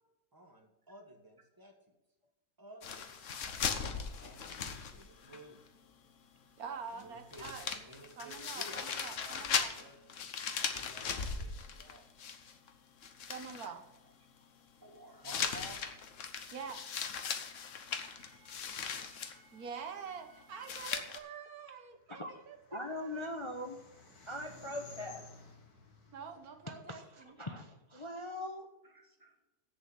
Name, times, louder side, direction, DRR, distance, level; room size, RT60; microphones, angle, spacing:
voice 1, 0.3-1.7 2.6-3.8 4.2-5.6 6.9-10.0 10.6-12.0 14.5-16.1 17.9-19.8 20.3-20.9 28.8-29.4, right 1 dB, 15° right, 4 dB, 1.3 m, -55 dB
sound 1, 2.8-5.4 5.7-5.8 7.0-7.1 7.3-12.7 13.0-13.7 15.2-19.3 20.6-21.2, left 6 dB, 60° left, 1.2 m, -38 dB
voice 2, 6.6-7.7 8.2-9.8 13.3-13.8 16.5-16.8 19.5-23.2 26.1-27.3, right 6 dB, 75° right, 6 dB, 1.5 m, -46 dB
sound 2, 22.0-27.5, left 4 dB, 80° left, 2.3 m, -56 dB
voice 3, 22.1-22.4 22.7-23.8 24.3-25.3 26.9-28.7, left 1 dB, 25° left, 4 dB, 0.7 m, -41 dB
8.1 x 7.0 x 8.1 m, 0.99 s
omnidirectional pair, 1.6 m